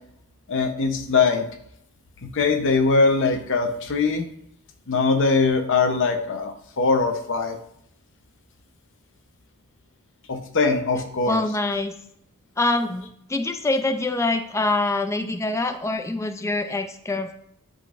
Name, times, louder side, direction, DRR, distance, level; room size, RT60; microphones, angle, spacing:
voice 1, 0.5-1.5 2.2-4.3 4.9-7.6 10.3-11.4, left 4 dB, 60° left, 6 dB, 0.7 m, -21 dB
voice 2, 11.3-11.9 12.6-17.3, left 2 dB, 15° left, 7 dB, 0.4 m, -25 dB
11.5 x 3.9 x 2.5 m, 0.72 s
head